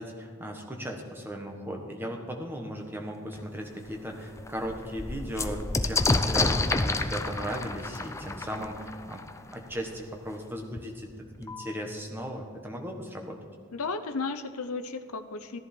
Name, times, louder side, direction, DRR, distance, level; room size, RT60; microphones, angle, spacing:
voice 1, 0.0-11.1 11.4-13.4, equal, 10° right, 2 dB, 1.3 m, -37 dB
sound 1, 3.3-3.4 3.9-4.0 4.2-9.8 10.8-10.9 11.1-11.7, left 2 dB, 15° left, 0.4 m, -29 dB
voice 2, 13.7-15.6, left 4 dB, 85° left, 9 dB, 0.7 m, -34 dB
14.5 x 10.5 x 4.5 m, 2.3 s
head